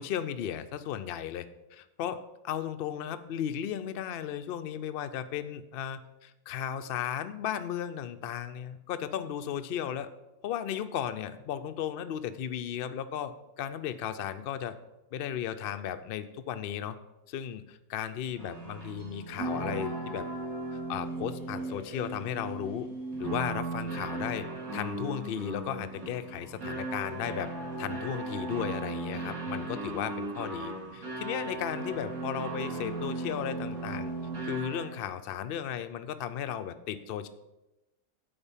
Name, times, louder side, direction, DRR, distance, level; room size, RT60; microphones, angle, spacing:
voice 1, 0.0-1.5 1.7-10.1 10.4-14.8 15.1-17.0 17.3-20.3 20.7-22.9 23.2-24.5 24.7-27.5 27.8-34.1 34.4-37.3, left 9 dB, 75° left, 9 dB, 0.5 m, -35 dB
sound 1, 18.4-35.1, right 2 dB, 65° right, 3.2 m, -37 dB
8.7 x 4.3 x 7.2 m, 0.98 s
omnidirectional pair, 1.6 m